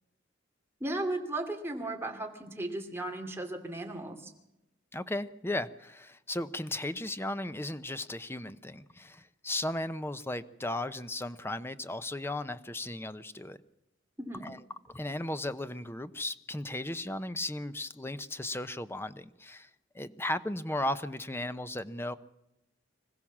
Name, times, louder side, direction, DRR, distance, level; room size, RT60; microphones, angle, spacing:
voice 1, 0.8-4.3 14.2-14.5, right 2 dB, 15° right, 2 dB, 2.7 m, -36 dB
voice 2, 4.9-13.6 14.4-14.6 14.9-19.7 19.9-22.1, left 1 dB, 15° left, 12 dB, 0.8 m, -36 dB
25.5 x 15.5 x 7.3 m, 0.88 s
head